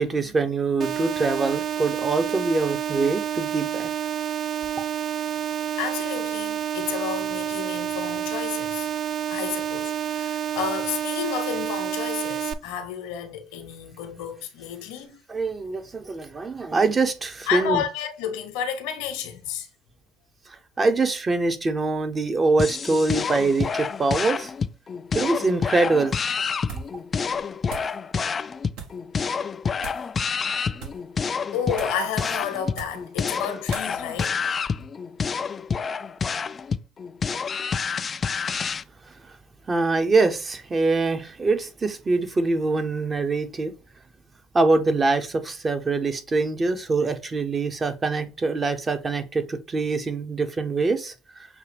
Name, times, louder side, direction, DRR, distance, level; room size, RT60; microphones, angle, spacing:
voice 1, 0.0-3.9 15.3-17.8 20.5-24.5 25.1-26.2 39.1-39.3 39.7-43.7 44.5-51.5, right 3 dB, 30° right, 0.8 m, -24 dB
sound 1, 0.8-12.5, right 9 dB, 45° right, 0.4 m, -29 dB
voice 2, 5.8-8.9 9.3-15.1 17.5-19.7 30.6-30.7 31.1-31.2 31.5-34.5, left 8 dB, 75° left, 0.9 m, -31 dB
sound 2, 22.6-38.8, left 5 dB, 35° left, 0.3 m, -28 dB
sound 3, 26.6-27.0 27.3-28.0 28.7-29.0 29.8-30.1 30.7-31.1 31.7-32.1 32.7-33.1 33.7-33.9, right 5 dB, 70° right, 1.3 m, -40 dB
6.5 x 2.4 x 3.3 m
hypercardioid pair, 65°, 0 cm